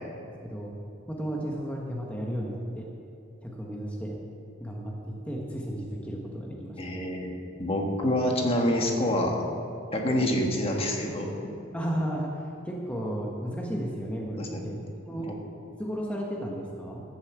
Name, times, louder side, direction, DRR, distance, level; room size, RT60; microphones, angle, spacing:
voice 1, 0.4-0.7 1.1-2.9 3.4-4.1 4.6-6.8 11.7-15.3 15.7-17.0, equal, 5° left, -2 dB, 1.3 m, -33 dB
voice 2, 6.8-7.3 7.6-9.5 9.9-11.3 14.4-14.6 15.2-15.3, left 1 dB, 30° left, 1 dB, 1.6 m, -27 dB
13.5 x 7.1 x 8.2 m, 2.6 s
head